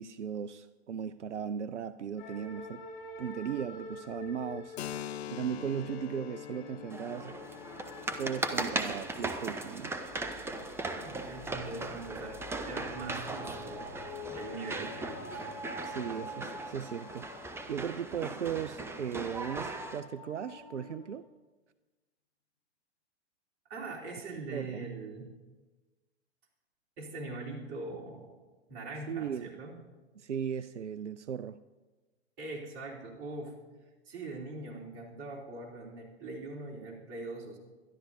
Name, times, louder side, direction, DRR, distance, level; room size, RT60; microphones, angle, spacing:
voice 1, 0.0-2.8 3.2-4.8 5.3-7.4 8.2-9.9 14.8-14.9 15.8-17.3 17.7-21.3 24.5-24.9 29.1-29.5 30.2-31.6, right 8 dB, 85° right, 15 dB, 0.5 m, -37 dB
sound 1, 2.2-21.2, left 2 dB, 45° left, 3.0 m, -47 dB
Keyboard (musical), 4.8-12.1, left 10 dB, 65° left, 0.7 m, -45 dB
sound 2, 6.9-20.0, right 2 dB, 5° right, 0.7 m, -38 dB
voice 2, 10.9-13.9 14.3-15.4 23.7-25.3 27.0-28.3 28.7-29.8 32.4-33.5 34.1-37.6, right 3 dB, 35° right, -3 dB, 3.5 m, -42 dB
23.5 x 11.5 x 2.7 m, 1.2 s
figure-of-eight pair, 105°, 34 cm